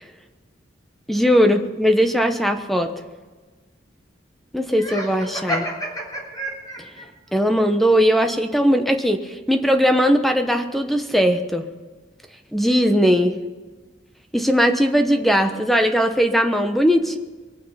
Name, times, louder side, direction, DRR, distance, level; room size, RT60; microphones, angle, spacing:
voice 1, 1.1-2.9 4.5-5.7 7.3-11.6 12.5-13.4 14.3-17.2, equal, ahead, 6 dB, 1.0 m, -19 dB
Laughter, 4.7-7.1, equal, 20° left, 3.6 m, -29 dB
23.0 x 9.3 x 5.6 m, 1.3 s
head